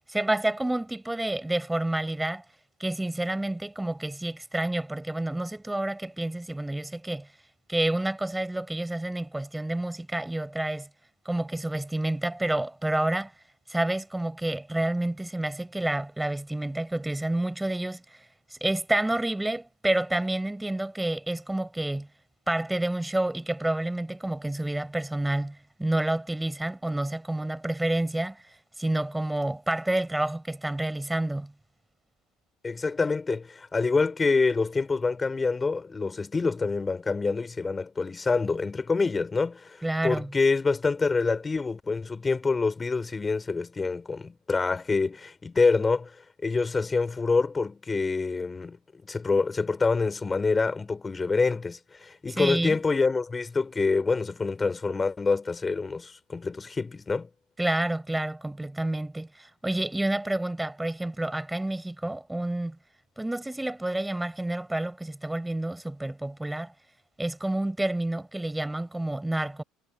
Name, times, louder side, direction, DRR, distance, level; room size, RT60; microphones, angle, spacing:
voice 1, 0.1-2.4 2.8-7.3 7.7-10.9 11.3-13.3 13.7-18.0 18.5-22.1 22.5-28.4 28.8-31.5 39.8-40.3 52.3-52.8 57.6-62.8 63.2-66.7 67.2-69.6, right 1 dB, 10° right, 5.3 m, -29 dB
voice 2, 32.6-46.2 46.4-48.8 49.0-57.3, left 4 dB, 20° left, 3.6 m, -26 dB
hypercardioid pair, 65°, 0 cm